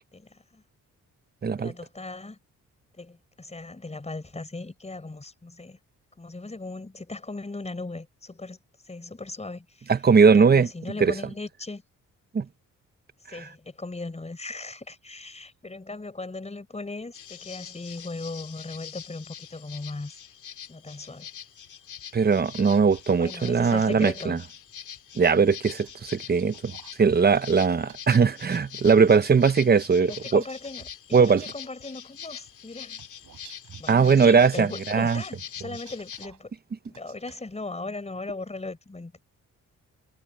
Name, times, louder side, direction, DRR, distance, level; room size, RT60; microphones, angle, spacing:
voice 1, 0.1-0.6 1.6-2.4 3.0-5.8 6.2-8.6 8.8-9.9 10.2-11.8 13.3-20.2 20.7-21.3 23.2-24.4 30.0-33.0 33.8-36.5 36.9-39.2, left 3 dB, 20° left, 5.1 m, -38 dB
voice 2, 1.4-1.7 9.9-10.7 11.0-11.1 12.3-12.5 22.1-24.4 25.2-26.7 27.0-30.4 31.1-31.4 33.9-35.2, right 5 dB, 30° right, 0.9 m, -20 dB
sound 1, 17.1-36.3, left 9 dB, 70° left, 2.6 m, -44 dB
sound 2, 22.5-24.0 25.6-28.0 30.1-31.7 33.0-34.5 35.5-36.4 36.8-37.4, right 9 dB, 70° right, 5.5 m, -50 dB
cardioid pair, 85°, 31 cm